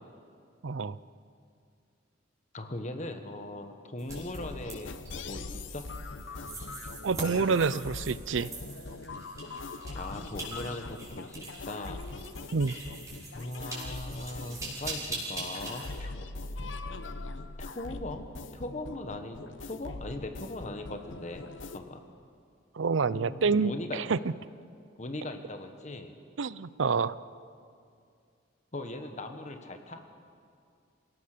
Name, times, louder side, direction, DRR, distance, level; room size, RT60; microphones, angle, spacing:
voice 1, 0.6-1.0 7.0-8.5 12.5-12.8 22.8-24.2 26.4-27.2, right 5 dB, 80° right, 18 dB, 0.6 m, -27 dB
voice 2, 2.5-4.9 5.3-5.8 9.9-12.0 13.3-16.2 17.6-18.3 18.5-22.0 23.1-24.0 25.0-26.1 28.7-30.0, left 2 dB, 40° left, 6 dB, 1.4 m, -39 dB
sound 1, 4.0-16.0, right 2 dB, 15° right, 5.8 m, -43 dB
sound 2, 4.1-21.8, left 3 dB, 80° left, 1.0 m, -42 dB
27.0 x 17.5 x 6.8 m, 2.4 s
head